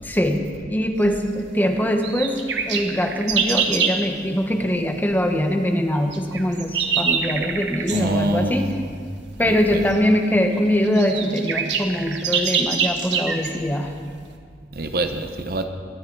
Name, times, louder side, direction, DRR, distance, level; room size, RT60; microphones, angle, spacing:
voice 1, 0.0-0.4 0.7-2.4 2.7-8.8 9.4-13.9, equal, 10° left, 4 dB, 0.9 m, -22 dB
sound 1, 2.0-4.0 6.1-8.1 9.9-10.0 10.6-10.7 10.8-13.6, right 6 dB, 90° right, 1.2 m, -25 dB
voice 2, 7.9-8.9 9.4-9.8 14.8-15.6, right 1 dB, 55° right, 7 dB, 0.9 m, -25 dB
22.0 x 10.0 x 4.7 m, 2.1 s
head